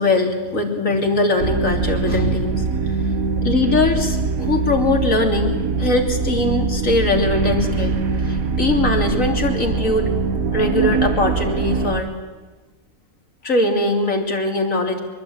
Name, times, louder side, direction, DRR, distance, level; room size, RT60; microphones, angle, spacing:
voice 1, 0.0-3.0 3.4-10.1 10.5-12.1 13.4-15.0, left 2 dB, 70° left, 2 dB, 3.5 m, -21 dB
sound 1, 1.4-12.0, right 4 dB, 85° right, 1.7 m, -22 dB
25.0 x 22.5 x 8.7 m, 1.3 s
omnidirectional pair, 1.4 m